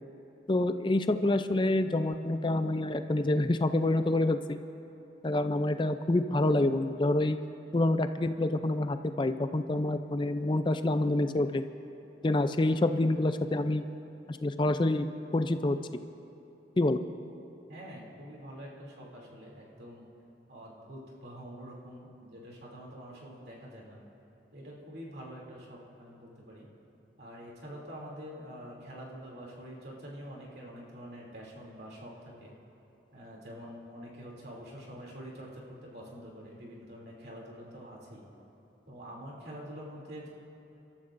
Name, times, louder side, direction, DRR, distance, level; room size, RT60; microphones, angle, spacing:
voice 1, 0.5-4.6 5.2-7.4 7.7-11.6 12.2-13.8 14.3-15.1 15.3-15.8 16.8-17.0, left 2 dB, 25° left, 9 dB, 0.4 m, -27 dB
voice 2, 17.7-20.0 20.5-24.0 24.5-26.7 27.2-32.5 33.1-38.2 38.9-40.3, equal, 65° right, -3 dB, 2.9 m, -46 dB
27.0 x 13.5 x 2.6 m, 2.9 s
head